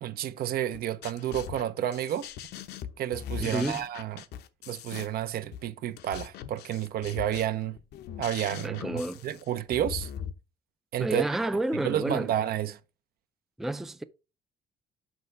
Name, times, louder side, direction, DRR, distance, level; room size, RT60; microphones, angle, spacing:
voice 1, 0.0-2.3 3.0-4.2 4.7-7.8 8.2-10.1 10.9-11.2 11.8-12.8, right 11 dB, 65° right, 0.8 m, -30 dB
sound 1, 0.7-10.3, left 9 dB, 75° left, 0.8 m, -41 dB
voice 2, 3.4-3.8 8.6-9.2 11.0-12.3 13.6-14.0, right 1 dB, ahead, 0.4 m, -30 dB
6.4 x 5.5 x 4.8 m
cardioid pair, 110°, 17 cm